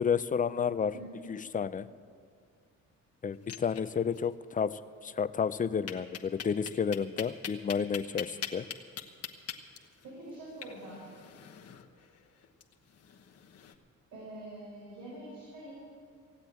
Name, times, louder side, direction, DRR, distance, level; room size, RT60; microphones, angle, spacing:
voice 1, 0.0-0.9 1.3-1.9 3.2-8.7, left 6 dB, 25° left, 14 dB, 0.5 m, -31 dB
voice 2, 0.9-1.3 10.0-11.0 14.1-15.7, right 1 dB, 85° right, -6 dB, 4.7 m, -45 dB
sound 1, 3.3-4.2 4.5-4.6 4.9-5.0 5.9-13.7, left 9 dB, 55° left, 1.2 m, -43 dB
16.5 x 8.2 x 9.1 m, 2.3 s
cardioid pair, 90°, 30 cm